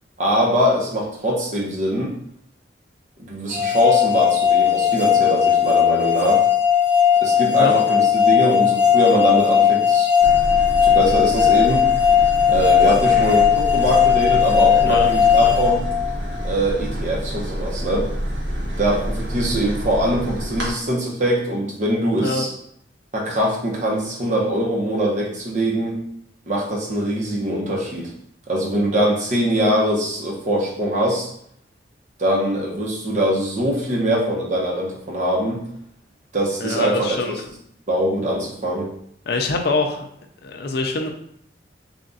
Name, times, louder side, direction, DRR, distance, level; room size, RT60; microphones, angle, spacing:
voice 1, 0.2-2.1 3.2-6.4 7.2-10.1 10.8-11.9 12.5-15.8 16.4-18.1 18.8-22.5 23.1-26.0 26.5-28.1 28.5-31.3 32.2-35.6 36.3-37.2 37.9-38.9, right 1 dB, 40° right, -3 dB, 0.9 m, -22 dB
sound 1, 3.5-16.5, left 8 dB, 5° right, 0.4 m, -17 dB
sound 2, 10.2-20.7, equal, 75° right, 0.9 m, -28 dB
voice 2, 36.6-37.4 39.3-40.1 40.4-41.1, left 3 dB, 60° left, 4 dB, 0.5 m, -24 dB
3.5 x 2.4 x 4.0 m, 0.69 s
head